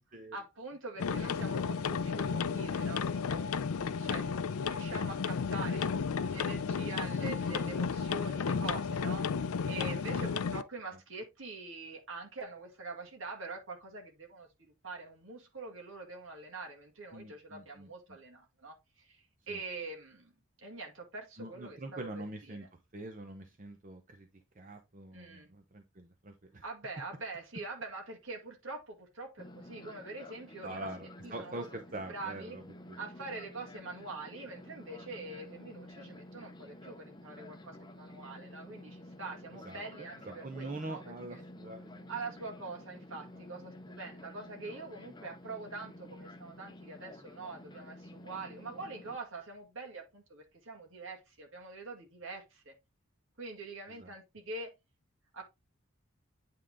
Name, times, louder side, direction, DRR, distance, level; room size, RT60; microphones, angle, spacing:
voice 1, 0.3-5.9 6.3-9.3 9.7-14.5 14.8-20.3 20.6-22.7 25.1-25.5 26.6-30.9 31.2-31.7 32.1-32.6 33.0-41.0 41.3-41.4 42.1-52.7 53.4-54.7 55.3-55.4, right 3 dB, 65° right, 2.1 m, -44 dB
sound 1, 1.0-10.6, left 5 dB, 85° left, 0.5 m, -33 dB
voice 2, 17.1-17.9 19.5-19.6 21.4-24.3 24.6-26.6 30.6-32.6 32.9-33.0 39.6-39.8 40.2-42.1 54.0-54.1, right 2 dB, 35° right, 0.8 m, -44 dB
Fixed-wing aircraft airplane, 29.4-49.2, left 1 dB, 20° left, 0.6 m, -51 dB
9.1 x 3.8 x 3.6 m
head